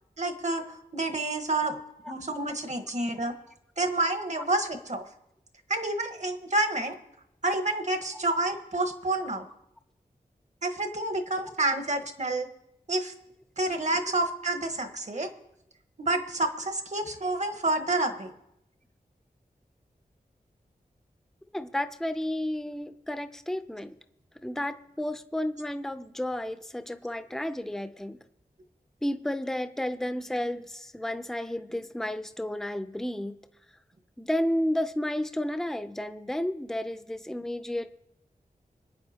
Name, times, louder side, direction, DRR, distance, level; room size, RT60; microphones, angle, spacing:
voice 1, 0.2-1.8 2.1-3.3 3.8-5.0 5.7-7.0 7.4-9.5 10.6-12.5 12.9-13.1 13.6-15.3 16.0-18.3, right 2 dB, 50° right, 7 dB, 1.4 m, -29 dB
voice 2, 21.5-23.9 24.4-28.2 29.0-33.4 34.2-37.9, left 1 dB, 5° left, 9 dB, 0.6 m, -32 dB
26.0 x 9.4 x 2.9 m, 0.82 s
wide cardioid pair, 80°, 15 cm